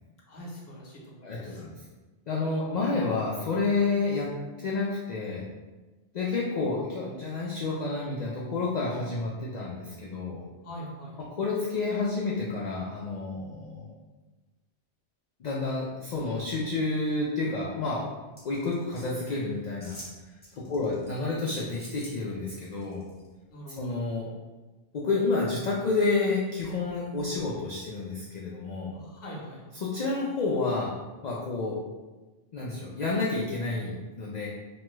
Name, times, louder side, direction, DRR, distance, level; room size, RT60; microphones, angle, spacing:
voice 1, 0.3-1.6 10.6-11.2 20.6-21.1 23.5-23.9 28.9-29.7, equal, 55° left, -3 dB, 1.0 m, -43 dB
voice 2, 1.2-1.8 2.3-4.3 4.6-5.5 6.1-10.5 11.4-13.9 15.4-18.1 18.4-20.0 20.6-23.0 23.8-24.3 24.9-28.9 29.8-30.9 31.2-31.8 32.5-34.5, left 3 dB, 70° left, -4 dB, 0.4 m, -29 dB
sound 1, 18.4-19.1 19.8-20.2 20.4-21.2 21.7-22.1 22.5-23.3 23.7-23.8, equal, 10° left, 0.6 m, -47 dB
3.2 x 2.2 x 3.0 m, 1.2 s
omnidirectional pair, 1.3 m